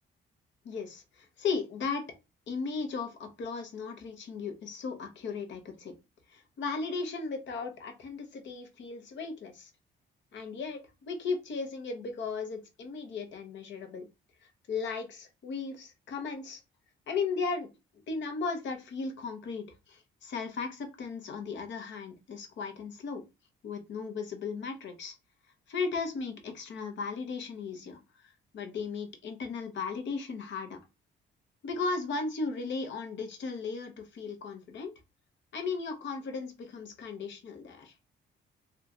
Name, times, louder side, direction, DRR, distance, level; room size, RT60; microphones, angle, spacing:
voice 1, 0.6-2.1 2.5-5.9 6.3-9.7 10.3-14.1 14.7-16.6 17.1-17.7 18.1-23.2 23.6-25.2 25.7-30.8 31.6-34.9 35.5-37.9, left 4 dB, 65° left, 6 dB, 0.9 m, -36 dB
2.8 x 2.4 x 3.6 m, 0.25 s
cardioid pair, 90°, 20 cm